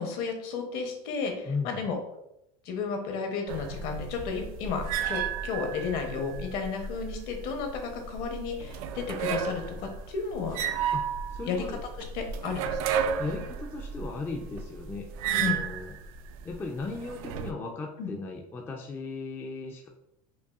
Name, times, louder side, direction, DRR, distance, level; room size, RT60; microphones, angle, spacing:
voice 1, 0.0-2.0 2.6-10.6 11.5-11.6 12.1-12.8 15.4-15.6 18.0-18.1, left 5 dB, 55° left, 4 dB, 0.8 m, -33 dB
voice 2, 1.4-1.8 10.9-11.8 13.2-15.9 16.4-19.9, left 3 dB, 10° left, 1 dB, 0.3 m, -36 dB
sound 1, 3.5-17.5, right 7 dB, 80° right, 0.4 m, -33 dB
5.3 x 2.3 x 2.3 m, 0.83 s
supercardioid pair, 130°, 18 cm